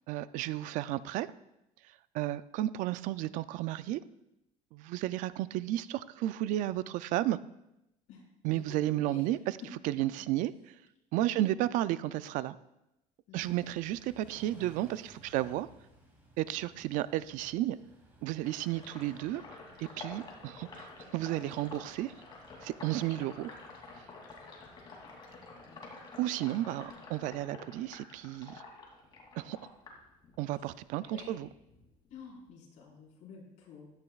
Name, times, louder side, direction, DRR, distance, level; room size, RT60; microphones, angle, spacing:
voice 1, 0.1-1.3 2.1-4.0 4.7-7.4 8.4-9.6 9.8-10.7 11.1-12.6 13.3-15.7 16.4-17.8 18.2-19.4 19.8-20.9 21.1-22.1 22.6-23.5 26.2-28.6 29.4-29.6 30.4-31.5, right 14 dB, 65° right, 15 dB, 0.4 m, -33 dB
voice 2, 8.1-9.3 11.2-11.6 13.3-13.6 16.5-16.6 18.7-18.8 25.6-25.9 31.0-31.4 32.1-33.9, left 6 dB, 55° left, -2 dB, 4.6 m, -51 dB
Car / Idling / Accelerating revving vroom, 13.4-25.7, right 1 dB, 15° right, 3.1 m, -61 dB
Sink (filling or washing), 18.4-30.7 31.1-32.5, left 3 dB, 35° left, 2.7 m, -49 dB
15.5 x 13.0 x 2.4 m, 0.88 s
cardioid pair, 165°, 14 cm